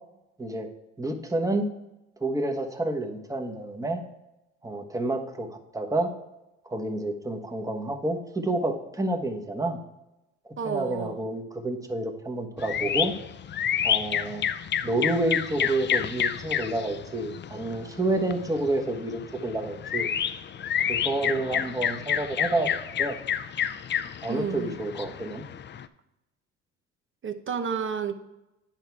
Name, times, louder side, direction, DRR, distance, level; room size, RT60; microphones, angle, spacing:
voice 1, 1.0-1.7 2.2-4.0 4.6-6.1 6.6-9.8 10.4-13.1 13.8-14.4 14.8-20.1 20.9-22.7 23.0-23.2 24.2-25.4, right 2 dB, 10° right, 4 dB, 1.3 m, -29 dB
voice 2, 10.6-11.2 24.3-24.8 27.2-28.1, right 7 dB, 40° right, 9 dB, 1.0 m, -31 dB
sound 1, 12.6-25.9, left 9 dB, 35° left, 0.5 m, -30 dB
9.0 x 5.7 x 4.7 m, 0.93 s
supercardioid pair, 70°, 31 cm